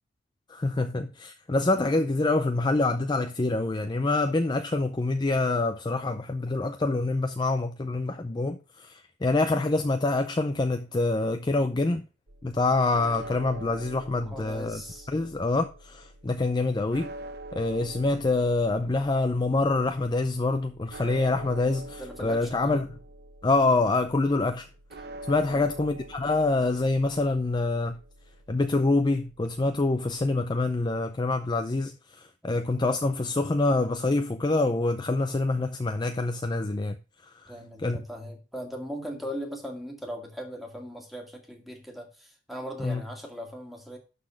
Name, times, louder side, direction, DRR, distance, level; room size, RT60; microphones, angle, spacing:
voice 1, 0.5-12.1 12.4-14.8 15.1-17.1 17.5-22.9 23.4-24.7 25.3-28.0 28.5-37.0 37.2-37.5 37.8-38.0 42.8-43.0, left 2 dB, 25° left, 0.5 m, -26 dB
sound 1, 12.3-30.7, right 1 dB, 55° right, 1.0 m, -45 dB
voice 2, 14.2-15.1 21.4-21.6 22.0-22.8 25.4-25.7 32.4-32.7 37.5-44.0, equal, ahead, 2.1 m, -39 dB
12.0 x 4.2 x 5.1 m
head